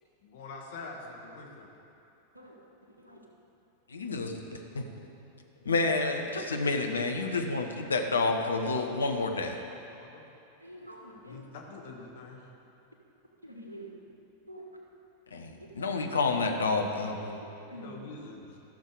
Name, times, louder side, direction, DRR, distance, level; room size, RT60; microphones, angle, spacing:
voice 1, 0.2-1.7 9.9-10.3 11.2-12.5 17.7-18.6, left 3 dB, 55° left, 0 dB, 1.2 m, -45 dB
voice 2, 3.9-4.3 4.7-4.8 5.6-9.6 15.3-17.4, left 3 dB, 70° left, 4 dB, 0.9 m, -29 dB
voice 3, 10.6-11.4 13.4-13.9 14.5-14.6 17.7-18.0, right 1 dB, 85° right, -1 dB, 1.4 m, -46 dB
14.0 x 6.6 x 4.8 m, 2.8 s
figure-of-eight pair, 90°, 0 cm